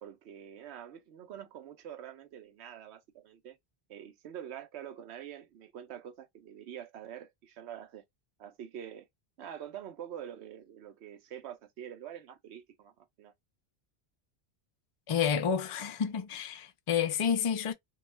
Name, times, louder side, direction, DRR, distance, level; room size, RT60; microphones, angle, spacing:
voice 1, 0.0-3.6 3.9-8.0 8.4-9.1 9.4-13.3, right 10 dB, 85° right, 0.9 m, -46 dB
voice 2, 15.1-17.7, left 7 dB, 55° left, 0.3 m, -30 dB
2.3 x 2.3 x 3.0 m
omnidirectional pair, 1.1 m